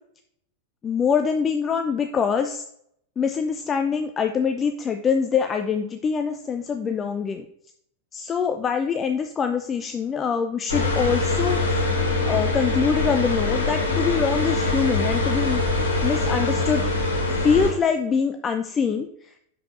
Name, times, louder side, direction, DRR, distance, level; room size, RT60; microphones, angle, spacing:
voice 1, 0.8-2.6 3.2-7.4 8.1-11.8 12.3-15.6 16.0-16.8 17.4-19.1, left 6 dB, 20° left, 6 dB, 0.4 m, -24 dB
sound 1, 10.7-17.7, left 2 dB, 75° left, 1.9 m, -23 dB
6.4 x 5.8 x 2.5 m, 0.69 s
figure-of-eight pair, 90°, 0 cm